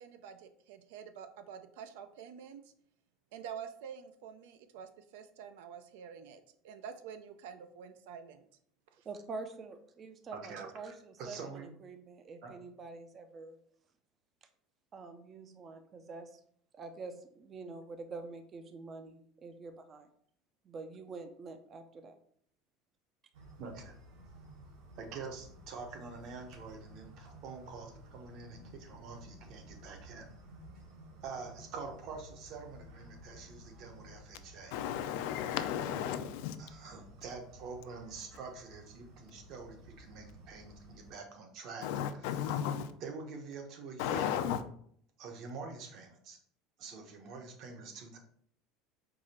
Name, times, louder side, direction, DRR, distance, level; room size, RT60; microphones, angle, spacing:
voice 1, 0.0-2.6 3.3-8.5 8.9-9.0 10.6-10.7, right 7 dB, 85° right, 9 dB, 0.5 m, -48 dB
voice 2, 9.1-13.6 14.9-16.4 16.7-20.1 20.6-22.2, right 3 dB, 25° right, 8 dB, 0.4 m, -46 dB
voice 3, 10.3-10.9 11.2-11.7 12.4-12.6 23.6-24.0 25.0-30.3 31.2-34.8 36.6-41.9 42.2-42.5 43.0-44.4 45.2-46.4 46.8-48.2, right 4 dB, 40° right, 4 dB, 0.8 m, -46 dB
sound 1, 23.3-41.1, right 1 dB, 65° right, 1.1 m, -55 dB
voice 4, 34.7-36.6 41.8-42.9 44.0-44.6, left 9 dB, 65° left, 9 dB, 0.4 m, -34 dB
4.7 x 2.5 x 4.1 m, 0.63 s
cardioid pair, 175°, 0 cm